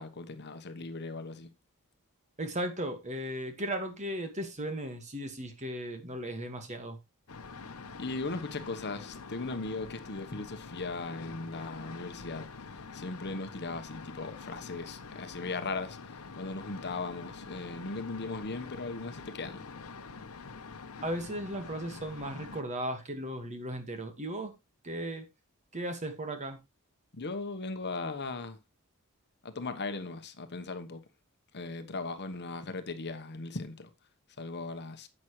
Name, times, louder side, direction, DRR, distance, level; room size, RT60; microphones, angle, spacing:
voice 1, 0.0-1.5 8.0-19.6 27.1-28.6 29.4-31.0 31.5-33.9 34.4-35.1, left 3 dB, 50° left, 1.1 m, -38 dB
voice 2, 2.4-7.0 21.0-24.5 24.8-25.3 25.7-26.6, right 1 dB, 35° right, 1.8 m, -36 dB
sound 1, 7.3-22.6, left 4 dB, 75° left, 0.9 m, -46 dB
10.5 x 7.6 x 3.1 m
head